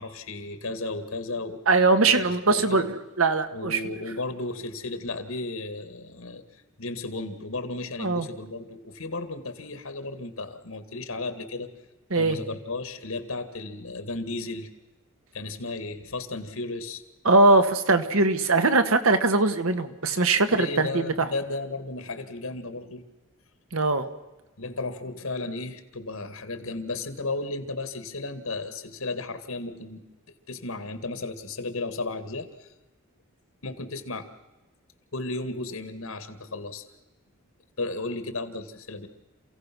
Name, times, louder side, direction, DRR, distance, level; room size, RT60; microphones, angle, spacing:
voice 1, 0.0-1.6 2.1-2.9 3.5-11.7 12.2-14.7 15.3-17.0 20.5-23.0 24.6-30.0 30.5-32.7 33.6-34.3 35.1-36.8 37.8-39.1, left 2 dB, 75° left, 9 dB, 2.1 m, -34 dB
voice 2, 1.7-3.8 8.0-8.3 12.1-12.4 17.2-21.1 23.7-24.1, right 3 dB, 75° right, 9 dB, 1.6 m, -21 dB
27.5 x 16.5 x 6.2 m, 1.1 s
head